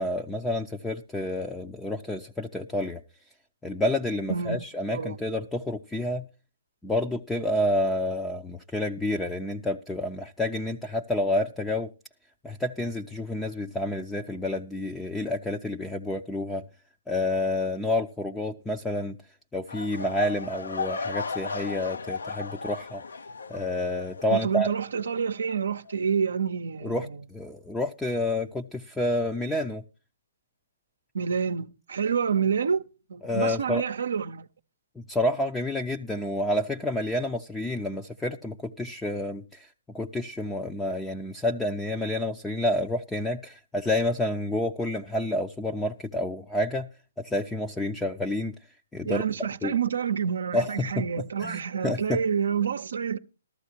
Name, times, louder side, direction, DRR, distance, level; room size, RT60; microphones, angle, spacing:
voice 1, 0.0-3.0 3.6-6.2 6.8-11.9 12.4-16.6 17.1-19.2 19.5-23.0 23.5-24.7 26.8-29.8 33.2-33.8 35.0-39.7 39.9-46.9 47.2-48.5 48.9-49.2 49.6-49.7 50.5-52.2, left 1 dB, 5° left, 0.5 m, -29 dB
voice 2, 4.3-4.6 4.9-5.2 24.3-27.2 31.1-32.8 33.1-34.5 49.0-53.2, right 7 dB, 75° right, 0.6 m, -28 dB
sound 1, 19.7-24.7 25.0-25.3 25.9-26.0, left 4 dB, 80° left, 0.7 m, -35 dB
14.5 x 13.0 x 2.8 m
hypercardioid pair, 140°, 0 cm